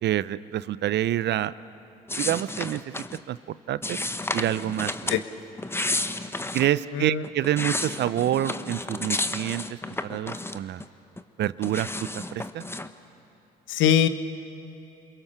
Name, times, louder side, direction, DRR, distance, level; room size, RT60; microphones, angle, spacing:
voice 1, 0.0-1.5 2.2-2.9 3.3-3.4 3.7-4.0 4.3-5.2 6.5-9.6 10.0-10.8 11.4-12.6, right 12 dB, 55° right, 17 dB, 0.7 m, -27 dB
sound 1, 2.1-3.2 3.8-5.2 5.6-6.7 7.2-10.8 11.2-12.9, left 2 dB, 10° left, 1.1 m, -31 dB
voice 2, 6.9-7.2 13.7-14.1, left 9 dB, 70° left, 11 dB, 1.1 m, -21 dB
29.0 x 22.5 x 6.9 m, 2.7 s
hypercardioid pair, 60°, 21 cm